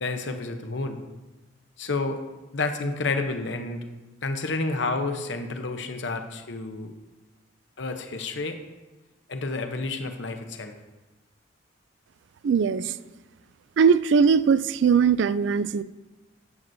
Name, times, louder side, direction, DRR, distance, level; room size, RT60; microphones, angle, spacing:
voice 1, 0.0-1.0 1.8-2.2 2.5-3.9 4.2-6.9 7.8-8.6 9.3-10.7, left 3 dB, 60° left, 6 dB, 0.8 m, -30 dB
voice 2, 12.4-12.9 13.8-15.8, right 6 dB, 60° right, 15 dB, 0.3 m, -20 dB
14.0 x 7.6 x 2.7 m, 1.1 s
head